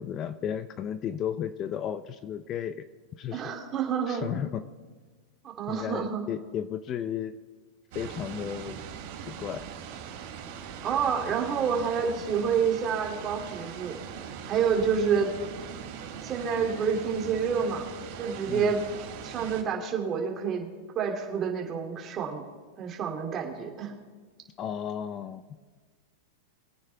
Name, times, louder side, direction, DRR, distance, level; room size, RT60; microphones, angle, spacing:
voice 1, 0.0-2.8 3.2-3.5 4.1-4.6 5.7-7.3 7.9-8.8 9.3-9.7 18.5-18.8 24.6-25.4, left 9 dB, 30° left, 13 dB, 0.6 m, -34 dB
voice 2, 3.3-4.3 5.4-6.3 10.8-14.0 14.5-15.3 16.2-17.9 18.2-18.8 19.2-20.7 20.9-22.4 22.8-23.9, right 6 dB, 30° right, 1 dB, 2.7 m, -28 dB
sound 1, 7.9-19.6, right 7 dB, 60° right, 3.3 m, -41 dB
23.0 x 9.2 x 3.4 m, 1.4 s
supercardioid pair, 140°, 0 cm